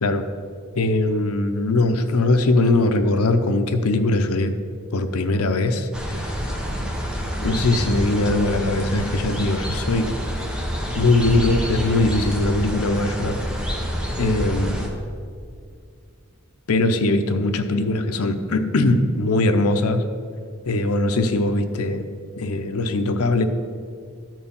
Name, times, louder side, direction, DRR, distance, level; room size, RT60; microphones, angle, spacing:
voice 1, 0.7-4.5 4.9-6.4 7.4-10.1 10.9-13.4 14.2-15.0 16.7-20.0 20.7-22.1 22.4-23.4, left 2 dB, 85° left, 7 dB, 0.7 m, -21 dB
sound 1, 5.9-14.9, equal, 5° right, 1.0 m, -27 dB
13.0 x 4.6 x 5.5 m, 2.2 s
head